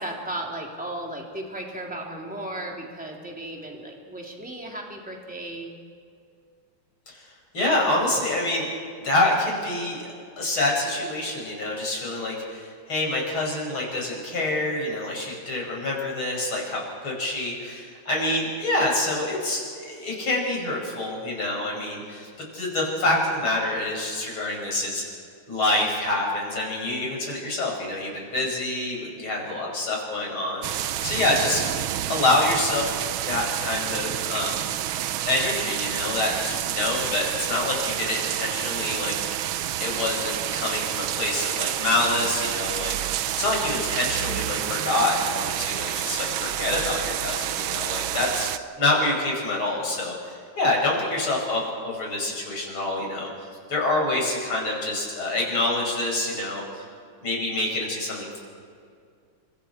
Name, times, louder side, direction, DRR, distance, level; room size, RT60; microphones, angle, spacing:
voice 1, 0.0-5.7, right 1 dB, 5° right, -1 dB, 3.2 m, -35 dB
voice 2, 7.5-8.7 9.0-10.1 10.4-22.3 22.5-25.0 25.5-31.6 32.1-32.9 33.3-34.6 35.2-39.4 39.8-42.9 43.4-48.5 48.8-53.3 53.7-56.8 57.2-58.4, left 2 dB, 85° left, -2 dB, 6.6 m, -26 dB
sound 1, 30.6-48.6, right 12 dB, 80° right, 1.5 m, -29 dB
30.0 x 24.5 x 4.6 m, 2.2 s
omnidirectional pair, 2.2 m